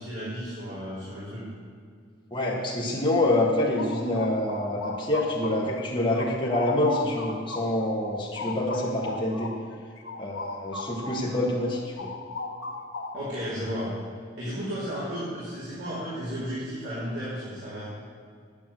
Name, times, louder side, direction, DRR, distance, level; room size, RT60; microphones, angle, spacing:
voice 1, 0.0-1.4 13.1-13.9 14.4-17.9, equal, 65° right, -10 dB, 3.8 m, -33 dB
voice 2, 2.3-9.5 10.2-12.1, left 1 dB, 25° left, -5 dB, 1.5 m, -26 dB
sound 1, 3.3-5.8 6.1-11.4 11.7-13.4, left 3 dB, 90° left, 1.3 m, -37 dB
10.0 x 9.3 x 7.5 m, 2.2 s
head